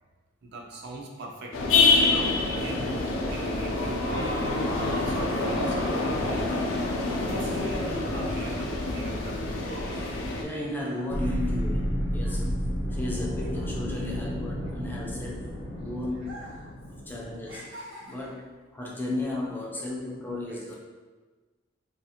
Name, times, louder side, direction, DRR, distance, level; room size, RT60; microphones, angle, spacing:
voice 1, 0.4-1.6 1.9-6.6 7.3-9.7 16.1-16.3 20.5-20.6, right 2 dB, 55° right, 0 dB, 0.4 m, -41 dB
sound 1, 1.5-10.4, left 3 dB, 90° left, 0.4 m, -26 dB
sound 2, 8.4-13.2 13.5-15.6 16.2-16.8 17.0-18.5 19.2-19.4, equal, 90° right, 0.8 m, -46 dB
voice 2, 10.4-12.5 12.9-15.5 15.8-16.5 17.1-17.7 18.0-20.7, left 2 dB, 10° left, -3 dB, 0.3 m, -34 dB
sound 3, 11.1-17.6, equal, 55° left, 0.7 m, -31 dB
2.6 x 2.3 x 2.7 m, 1.3 s
head